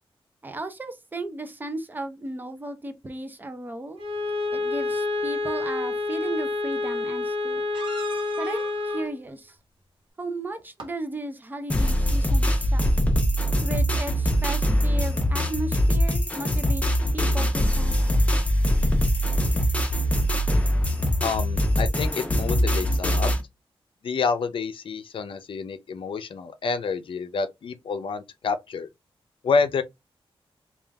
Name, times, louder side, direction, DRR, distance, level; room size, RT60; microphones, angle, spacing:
voice 1, 0.4-4.0 4.5-7.6 8.4-9.6 10.2-12.9 13.6-16.8 17.1-18.2, right 2 dB, 20° right, 0.6 m, -35 dB
Bowed string instrument, 4.0-9.2, left 3 dB, 90° right, 1.0 m, -28 dB
sound 1, 6.5-6.6 7.7-9.1 10.6-10.9 13.1-13.2 13.5-13.6, right 2 dB, 60° right, 1.1 m, -39 dB
sound 2, 11.7-23.4, equal, 15° left, 0.8 m, -22 dB
voice 2, 21.2-23.3 24.0-28.9 29.4-29.8, left 5 dB, 65° left, 0.6 m, -28 dB
3.6 x 2.4 x 3.4 m
wide cardioid pair, 175°, 10 cm